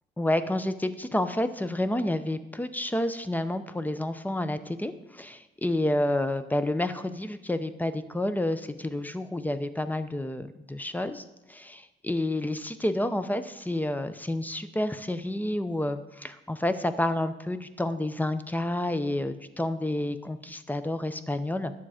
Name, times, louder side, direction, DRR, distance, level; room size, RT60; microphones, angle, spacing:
voice 1, 0.2-21.7, left 1 dB, 10° left, 11 dB, 0.7 m, -29 dB
10.0 x 7.1 x 5.0 m, 0.97 s
cardioid pair, 90°, 20 cm